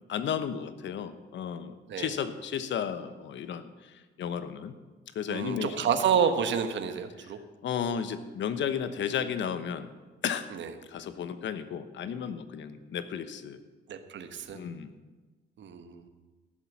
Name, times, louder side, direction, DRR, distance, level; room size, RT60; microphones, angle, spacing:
voice 1, 0.1-4.7 5.1-5.7 7.6-9.9 10.2-10.5 10.9-13.6 14.5-14.9, left 8 dB, 70° left, 11 dB, 1.0 m, -33 dB
voice 2, 5.3-7.4 10.5-10.7 13.9-14.6 15.6-16.1, right 7 dB, 65° right, 8 dB, 1.3 m, -29 dB
15.0 x 7.3 x 7.4 m, 1.3 s
cardioid pair, 90°, 20 cm